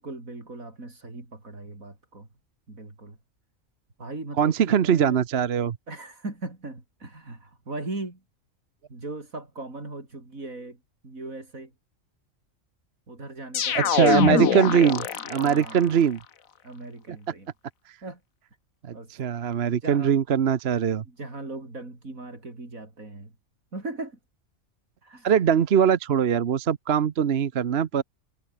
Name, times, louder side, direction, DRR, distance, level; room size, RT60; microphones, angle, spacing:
voice 1, 0.0-2.3 2.7-3.2 4.0-5.2 5.9-8.2 8.9-11.7 13.1-14.0 15.2-16.1 16.6-17.5 18.0-18.2 18.9-19.1 19.7-20.2 21.0-23.3 23.7-24.2 25.0-25.3, right 2 dB, 85° right, 5.4 m, -39 dB
voice 2, 4.4-5.8 13.7-16.2 18.8-21.0 25.2-28.0, right 8 dB, 55° right, 1.0 m, -22 dB
sound 1, 13.5-15.8, left 8 dB, 80° left, 1.6 m, -24 dB
omnidirectional pair, 1.4 m